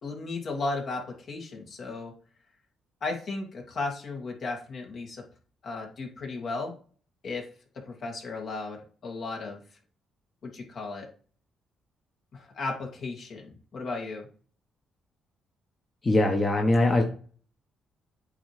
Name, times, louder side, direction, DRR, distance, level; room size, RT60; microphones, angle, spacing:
voice 1, 0.0-2.2 3.0-5.3 5.6-6.7 7.2-7.5 7.9-8.8 9.0-9.6 10.4-11.1 12.3-14.3, left 3 dB, 55° left, 1 dB, 2.2 m, -35 dB
voice 2, 16.0-17.0, left 2 dB, 30° left, 0 dB, 1.3 m, -22 dB
8.5 x 3.1 x 5.0 m, 0.42 s
cardioid pair, 90°, 0 cm